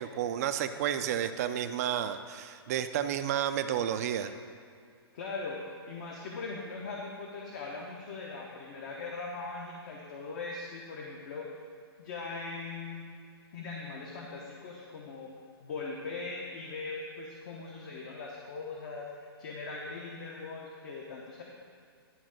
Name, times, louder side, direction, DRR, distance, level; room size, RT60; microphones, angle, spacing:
voice 1, 0.0-4.3, right 10 dB, 40° right, 9 dB, 0.4 m, -31 dB
voice 2, 5.1-11.5 12.0-13.1 13.5-15.3 15.6-21.4, left 3 dB, 45° left, -2 dB, 1.0 m, -40 dB
11.0 x 3.6 x 6.5 m, 2.3 s
hypercardioid pair, 155°, 13 cm